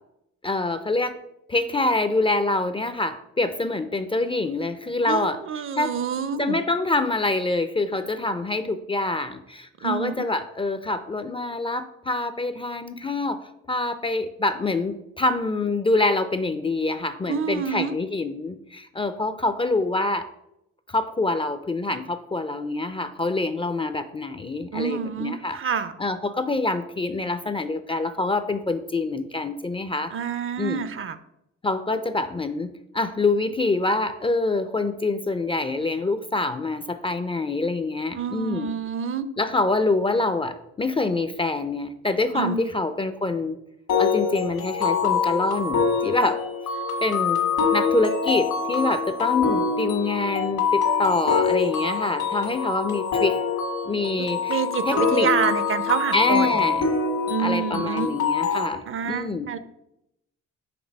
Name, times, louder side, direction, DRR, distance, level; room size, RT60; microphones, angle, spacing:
voice 1, 0.4-1.2 1.5-5.4 5.8-5.9 6.4-13.4 13.7-20.3 20.9-25.6 26.0-30.1 30.6-30.9 31.6-38.7 39.4-43.6 44.0-46.4 47.0-47.4 47.7-53.4 53.8-55.3 56.1-56.9 57.4-59.5, left 2 dB, 20° left, 10 dB, 0.4 m, -25 dB
voice 2, 5.0-6.6 9.8-10.3 17.3-17.9 24.7-25.9 30.1-31.2 38.1-39.3 42.3-42.7 54.2-56.7 57.3-58.1 58.9-59.6, right 7 dB, 45° right, 14 dB, 0.5 m, -28 dB
sound 1, 43.9-58.7, left 5 dB, 75° left, 1.6 m, -25 dB
6.0 x 3.3 x 5.2 m, 0.82 s
cardioid pair, 90°, 30 cm